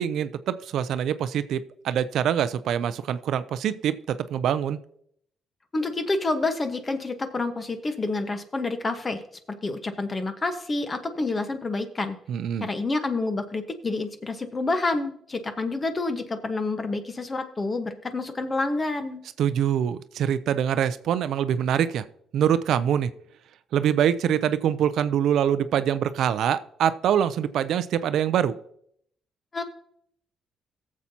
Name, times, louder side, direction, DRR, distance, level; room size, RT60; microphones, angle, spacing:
voice 1, 0.0-4.8 12.3-12.7 19.4-22.0 22.3-23.1 23.7-28.5, right 9 dB, 75° right, 13 dB, 0.5 m, -24 dB
voice 2, 5.7-9.2 9.5-12.2 12.6-19.2 29.5-29.6, left 3 dB, 30° left, 8 dB, 1.1 m, -28 dB
18.0 x 7.3 x 2.8 m, 0.69 s
cardioid pair, 90°, 0 cm